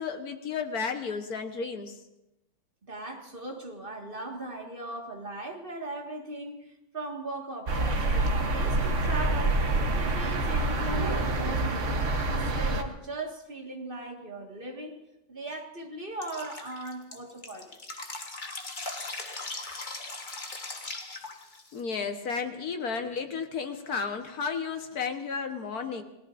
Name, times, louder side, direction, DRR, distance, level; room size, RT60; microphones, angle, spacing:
voice 1, 0.0-2.0 21.7-26.0, left 5 dB, 55° left, 6 dB, 1.6 m, -33 dB
voice 2, 2.9-15.0 15.3-17.8, right 2 dB, 30° right, 1 dB, 1.9 m, -39 dB
sound 1, 7.7-12.8, right 2 dB, 45° right, 1.3 m, -27 dB
Drip, 16.2-21.8, left 2 dB, 30° left, 1.3 m, -39 dB
29.0 x 18.0 x 2.6 m, 0.95 s
omnidirectional pair, 2.1 m